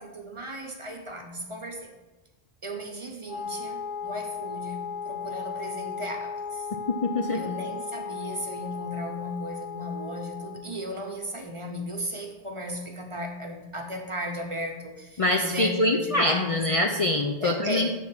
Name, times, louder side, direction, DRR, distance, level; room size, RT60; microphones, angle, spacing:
voice 1, 0.0-1.9 2.6-6.7 7.3-16.7 17.4-17.9, equal, 30° right, 2 dB, 0.8 m, -36 dB
Wind instrument woodwind instrument, 3.3-10.7, left 5 dB, 25° left, 2.6 m, -36 dB
voice 2, 7.0-7.4 15.2-17.9, left 1 dB, 45° left, 1 dB, 0.5 m, -24 dB
8.5 x 3.6 x 5.9 m, 1.1 s
omnidirectional pair, 1.1 m